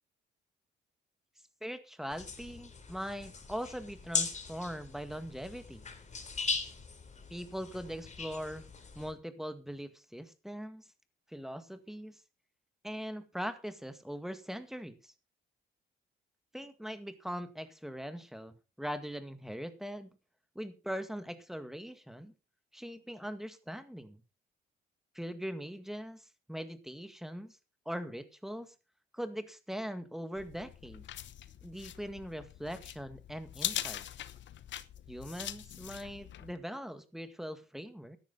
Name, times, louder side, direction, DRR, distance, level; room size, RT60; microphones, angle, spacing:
voice 1, 1.6-5.9 7.3-8.6 9.0-10.8 11.3-12.2 12.8-15.1 16.5-20.1 20.6-22.3 22.7-24.2 25.1-27.6 27.9-28.7 29.1-31.0 31.6-34.0 35.1-38.2, equal, ahead, 10 dB, 1.9 m, -41 dB
sound 1, 2.1-9.1, left 5 dB, 35° left, 3.4 m, -39 dB
sound 2, 30.4-36.6, left 11 dB, 65° left, 1.0 m, -42 dB
13.5 x 10.5 x 4.0 m, 0.30 s
cardioid pair, 90°, 20 cm